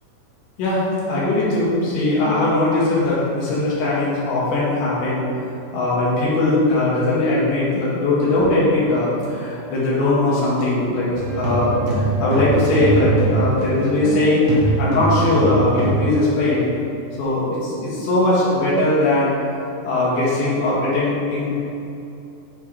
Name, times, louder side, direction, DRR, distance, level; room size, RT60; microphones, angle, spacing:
voice 1, 0.6-5.2 5.7-11.1 11.3-14.5 14.8-16.6 17.2-19.3 19.8-21.6, left 2 dB, 85° left, -8 dB, 3.8 m, -20 dB
sound 1, 11.1-14.2 14.5-16.1, right 3 dB, 70° right, 2.8 m, -22 dB
11.0 x 3.7 x 3.4 m, 2.8 s
omnidirectional pair, 4.9 m